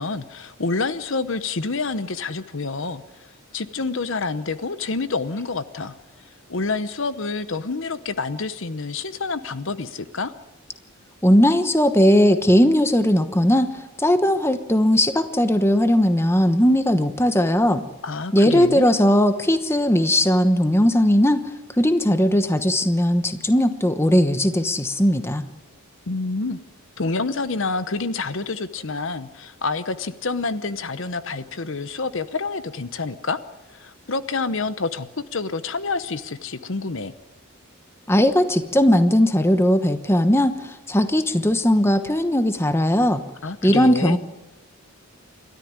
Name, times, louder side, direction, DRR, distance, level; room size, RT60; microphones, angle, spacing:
voice 1, 0.0-3.0 3.5-5.9 6.5-10.3 18.0-18.9 26.1-26.6 27.0-33.4 33.7-37.1 43.4-44.2, left 3 dB, 55° left, 13 dB, 0.9 m, -28 dB
voice 2, 11.2-17.8 18.3-21.5 21.8-25.4 38.1-43.2 43.6-44.2, equal, 10° left, 9 dB, 1.0 m, -18 dB
28.5 x 13.0 x 9.5 m, 1.1 s
head